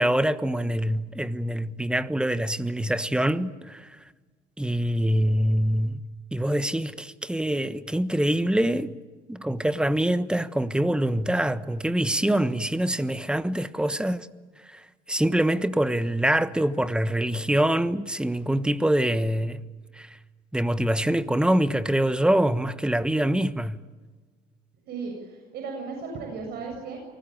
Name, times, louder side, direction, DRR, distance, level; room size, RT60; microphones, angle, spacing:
voice 1, 0.0-3.9 4.6-6.0 6.3-8.9 9.3-14.3 14.7-14.8 15.1-19.6 20.0-20.2 20.5-23.8, right 1 dB, 5° right, 1.2 m, -24 dB
voice 2, 24.8-27.0, right 4 dB, 70° right, 7.6 m, -35 dB
28.5 x 20.0 x 8.8 m
cardioid pair, 110°, 17 cm